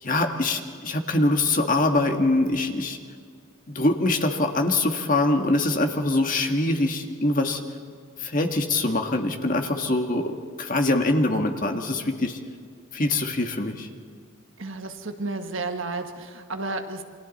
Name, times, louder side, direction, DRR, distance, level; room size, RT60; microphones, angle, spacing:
voice 1, 0.0-3.0 3.7-7.6 8.2-12.4 12.9-13.9, left 2 dB, 40° left, 4 dB, 1.7 m, -23 dB
voice 2, 14.6-17.0, right 3 dB, 65° right, 6 dB, 1.4 m, -32 dB
29.0 x 23.5 x 4.2 m, 2.1 s
head